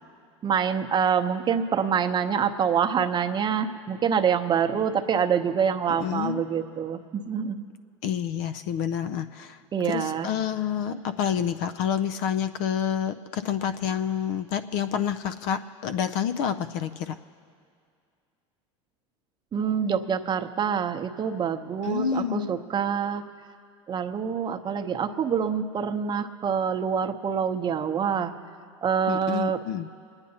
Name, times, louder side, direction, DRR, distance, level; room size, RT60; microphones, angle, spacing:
voice 1, 0.4-7.7 9.7-10.3 19.5-23.2 23.9-28.3 28.8-29.6, right 7 dB, 30° right, 7 dB, 0.8 m, -26 dB
voice 2, 5.9-6.4 8.0-17.2 21.8-22.5 29.1-29.9, left 8 dB, 60° left, 10 dB, 0.5 m, -28 dB
28.5 x 9.7 x 2.8 m, 2.3 s
hypercardioid pair, 90°, 16 cm